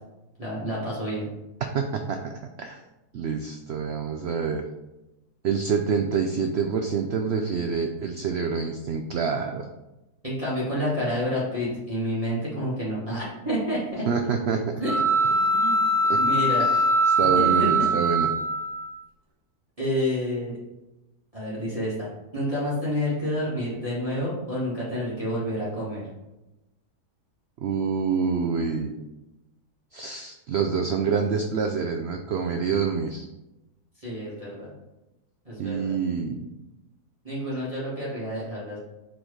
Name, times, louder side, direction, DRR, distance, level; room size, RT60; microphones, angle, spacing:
voice 1, 0.4-1.3 10.2-14.0 14.8-15.0 15.2-15.8 16.1-16.7 17.3-17.7 19.8-20.6 21.3-22.1 22.3-26.1 34.0-34.7 35.5-35.9 37.2-38.8, equal, 20° right, -9 dB, 2.0 m, -29 dB
voice 2, 1.6-2.3 2.6-2.8 3.1-4.6 5.4-9.7 14.1-14.6 16.1-16.2 16.6-18.3 27.6-29.0 29.9-33.2 35.6-36.5, right 5 dB, 90° right, 4 dB, 0.5 m, -27 dB
sound 1, 14.8-18.9, right 2 dB, 55° right, 1.7 m, -22 dB
4.5 x 4.2 x 4.9 m, 0.97 s
omnidirectional pair, 1.7 m